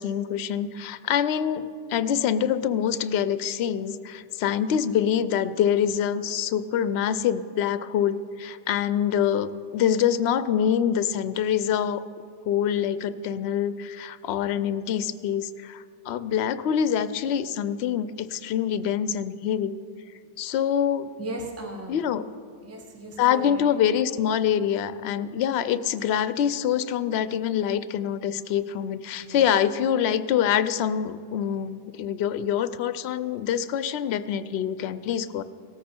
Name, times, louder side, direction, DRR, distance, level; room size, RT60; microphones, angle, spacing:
voice 1, 0.0-12.0 12.5-19.7 20.4-21.1 21.9-22.3 23.2-35.4, left 9 dB, 70° left, 14 dB, 0.8 m, -25 dB
voice 2, 21.2-22.1 22.6-23.7 29.2-29.4, right 1 dB, 15° right, 2 dB, 1.0 m, -37 dB
17.5 x 13.5 x 4.4 m, 2.3 s
omnidirectional pair, 1.2 m